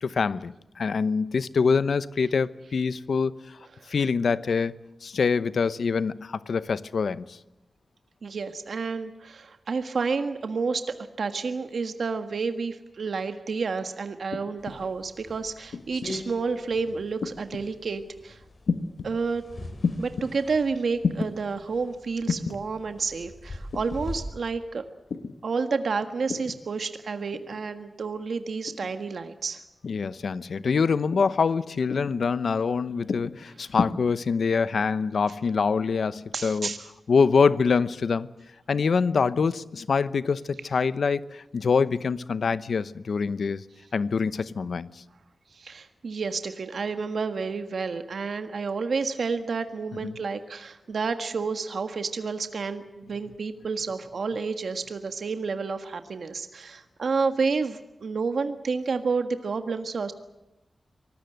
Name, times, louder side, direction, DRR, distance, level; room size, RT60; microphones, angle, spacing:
voice 1, 0.0-3.4 3.9-4.7 5.0-7.4 29.8-36.7 37.1-38.3 38.7-43.6 43.9-44.9 50.0-50.2, left 5 dB, 75° left, 0.8 m, -25 dB
voice 2, 8.2-10.8 11.2-18.4 19.0-19.4 20.0-24.8 25.4-29.6 36.3-36.8 45.6-60.1, right 4 dB, 70° right, 1.5 m, -30 dB
sound 1, 14.3-14.8 15.7-16.1 17.2-17.7 18.7-19.1 19.8-20.3 21.0-21.3 22.3-22.6 23.7-24.0 25.1-25.4 26.3-26.6 27.3-27.6 28.7-29.0 29.8-30.2 31.1-31.4 31.9-32.2 33.1-33.4 33.8-33.9, left 5 dB, 90° left, 1.4 m, -30 dB
sound 2, 14.6-24.2, left 2 dB, 50° left, 8.0 m, -43 dB
24.5 x 19.0 x 8.0 m
wide cardioid pair, 115°, 0 cm